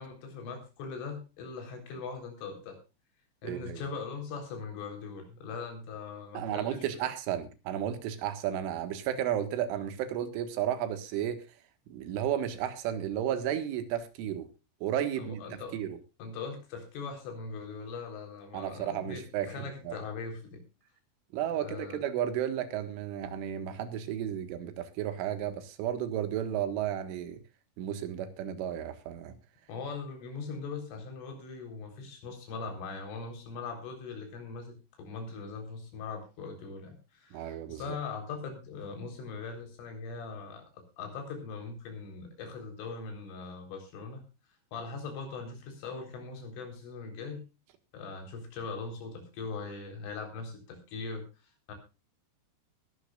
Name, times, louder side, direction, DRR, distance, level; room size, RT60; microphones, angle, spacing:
voice 1, 0.0-2.8 3.4-7.1 15.2-15.8 16.2-20.6 21.6-22.0 29.7-44.2 44.7-47.4 47.9-51.3 51.7-51.8, left 4 dB, 85° left, 6.5 m, -41 dB
voice 2, 3.4-3.8 6.4-11.4 11.9-14.5 14.8-15.4 15.7-16.0 18.5-20.0 21.3-27.4 27.8-29.3 37.3-38.0, right 10 dB, 85° right, 4.1 m, -33 dB
20.5 x 12.0 x 2.4 m
omnidirectional pair, 5.5 m